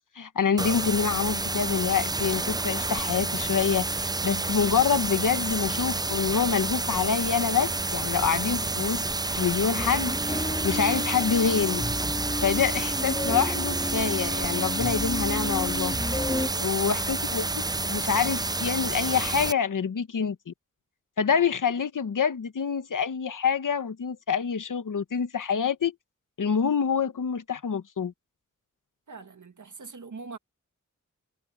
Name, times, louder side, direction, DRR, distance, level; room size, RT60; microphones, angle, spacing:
voice 1, 0.2-9.0 9.3-11.8 12.4-16.0 16.6-17.5 17.9-20.5 21.2-25.9 26.4-28.1, left 6 dB, 85° left, 0.9 m, -26 dB
sound 1, 0.6-19.5, right 3 dB, 15° right, 0.3 m, -29 dB
sound 2, 9.8-16.5, left 1 dB, 20° left, 1.6 m, -32 dB
voice 2, 16.3-17.1 29.1-30.4, right 4 dB, 70° right, 1.9 m, -44 dB
wide cardioid pair, 65°, 31 cm